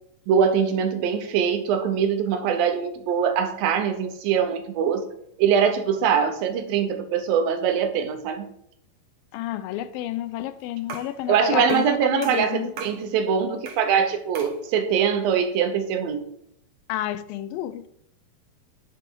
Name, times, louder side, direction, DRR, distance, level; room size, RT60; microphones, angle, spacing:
voice 1, 0.3-5.0 5.4-8.5 11.3-16.2, right 7 dB, 80° right, 2.7 m, -23 dB
voice 2, 9.3-12.7 16.9-17.9, left 12 dB, 85° left, 2.4 m, -30 dB
sound 1, 10.9-11.2 11.7-11.9 12.2-13.0 13.6-13.9 14.3-14.6, right 5 dB, 55° right, 1.8 m, -39 dB
10.0 x 5.9 x 4.6 m
omnidirectional pair, 4.1 m